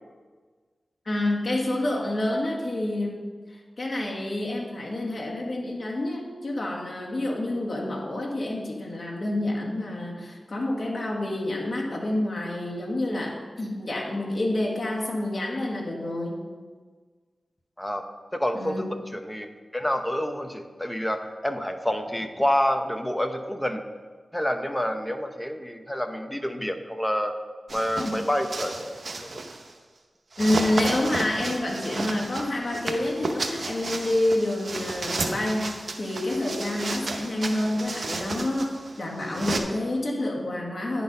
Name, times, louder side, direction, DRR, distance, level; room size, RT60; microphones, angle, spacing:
voice 1, 1.1-3.2 3.5-16.5 18.5-18.8 28.0-28.2 30.4-35.7 36.0-38.7 39.0-41.0, left 1 dB, 55° left, -2 dB, 1.7 m, -28 dB
voice 2, 18.3-23.8 24.3-27.3 27.7-29.4, equal, 10° left, 6 dB, 0.8 m, -28 dB
sound 1, 27.7-29.7 30.3-39.6, right 3 dB, 65° right, 0.7 m, -33 dB
9.9 x 4.1 x 5.3 m, 1.5 s
cardioid pair, 45°, 0 cm